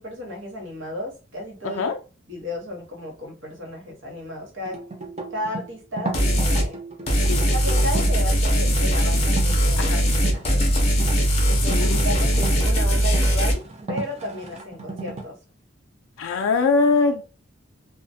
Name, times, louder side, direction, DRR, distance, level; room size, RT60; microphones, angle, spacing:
voice 1, 0.0-1.8 2.3-4.8 5.3-6.8 7.5-9.9 10.3-10.6 11.5-13.6 13.9-15.4, left 1 dB, 65° right, 0.9 m, -33 dB
voice 2, 1.6-2.0 7.3-7.5 9.8-10.1 11.6-12.0 16.2-17.2, left 4 dB, 85° left, 0.4 m, -22 dB
sound 1, 4.7-8.2 9.2-9.6 10.1-15.2, right 3 dB, 30° right, 0.4 m, -34 dB
sound 2, 6.1-6.7 7.1-13.5, equal, 30° left, 0.5 m, -20 dB
2.3 x 2.1 x 2.6 m
head